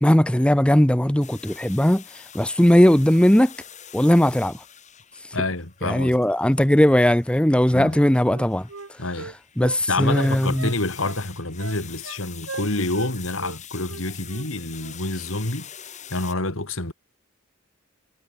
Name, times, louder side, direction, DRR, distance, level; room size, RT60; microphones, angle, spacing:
voice 1, 0.0-3.5 3.9-4.6 5.8-8.7 9.6-10.7, equal, 5° left, 0.6 m, -18 dB
sound 1, 1.2-16.3, left 9 dB, 35° left, 5.1 m, -44 dB
voice 2, 5.3-6.2 7.7-8.0 9.0-9.3 9.9-15.7 16.1-16.9, left 2 dB, 70° left, 3.1 m, -27 dB
Wind instrument woodwind instrument, 7.9-9.8 10.1-11.2 11.6-12.2 12.5-13.1 13.4-13.6 13.9-14.5 14.8-15.0, right 4 dB, 65° right, 1.2 m, -38 dB
head